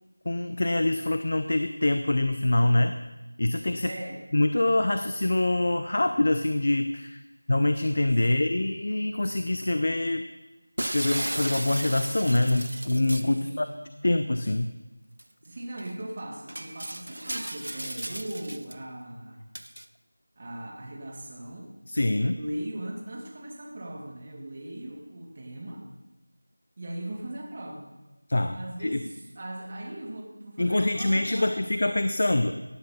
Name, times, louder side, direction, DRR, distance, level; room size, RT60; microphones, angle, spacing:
voice 1, 0.3-3.0 3.4-3.9 4.3-7.2 7.5-10.3 10.8-13.7 14.0-14.7 21.9-22.4 28.3-29.0 30.6-32.5, left 1 dB, 50° left, 9 dB, 0.7 m, -25 dB
voice 2, 3.8-4.2 7.9-8.7 13.4-13.8 15.4-19.4 20.4-21.7 22.3-25.8 26.8-27.9 28.5-31.6, right 1 dB, 25° right, 0 dB, 1.9 m, -39 dB
Shatter, 10.8-13.4 15.2-15.3 15.8-15.9 16.5-18.7 19.5-19.9, right 1 dB, 80° right, 0.7 m, -35 dB
17.0 x 10.5 x 4.2 m, 1.1 s
figure-of-eight pair, 175°, 0 cm